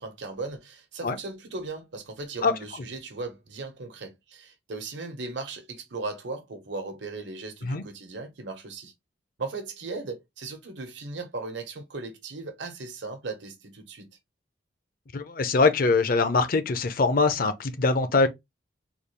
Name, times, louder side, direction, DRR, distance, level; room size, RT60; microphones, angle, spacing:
voice 1, 0.0-8.9 9.4-14.1, right 3 dB, 85° right, 1.0 m, -37 dB
voice 2, 15.1-18.3, left 3 dB, 50° left, 0.6 m, -23 dB
3.8 x 2.3 x 3.2 m
head